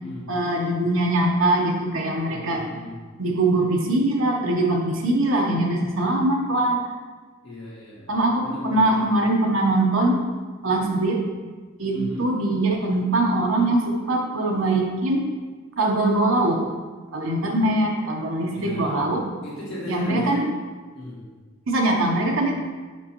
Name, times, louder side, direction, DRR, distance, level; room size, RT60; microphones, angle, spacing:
voice 1, 0.3-2.7 3.2-6.8 8.1-10.2 10.6-11.2 11.8-15.2 15.8-16.6 17.1-19.3 19.9-20.5 21.7-22.6, right 2 dB, 65° right, 0 dB, 0.8 m, -22 dB
voice 2, 2.3-3.0 7.4-8.1 8.4-9.2 11.9-12.3 17.6-17.7 18.5-19.1 19.4-20.4 20.9-21.3, left 1 dB, 60° left, -8 dB, 1.9 m, -35 dB
7.3 x 5.3 x 2.9 m, 1.4 s
head